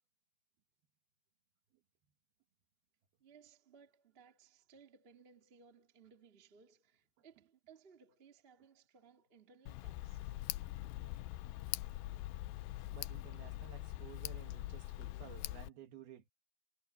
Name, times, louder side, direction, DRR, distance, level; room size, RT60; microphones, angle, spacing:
voice 1, 3.2-10.5 11.6-11.7, right 6 dB, 25° right, 1.4 m, -63 dB
Tick, 9.7-15.7, left 17 dB, 85° left, 2.1 m, -43 dB
voice 2, 12.9-16.3, right 9 dB, 70° right, 3.4 m, -55 dB
omnidirectional pair, 4.8 m